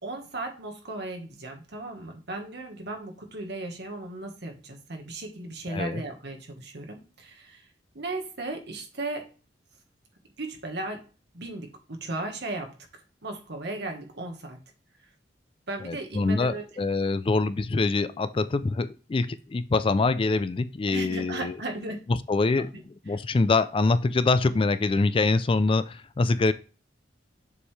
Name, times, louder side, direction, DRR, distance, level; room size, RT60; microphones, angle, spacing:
voice 1, 0.0-7.7 7.9-9.3 10.4-11.0 11.3-14.6 15.7-16.7 20.9-22.0 22.7-22.8 23.1-23.2, right 2 dB, 65° right, 4 dB, 1.5 m, -36 dB
voice 2, 5.7-6.0 15.8-21.6 22.3-22.7 23.1-26.5, left 3 dB, 30° left, 14 dB, 0.4 m, -24 dB
7.1 x 4.7 x 3.3 m, 0.35 s
head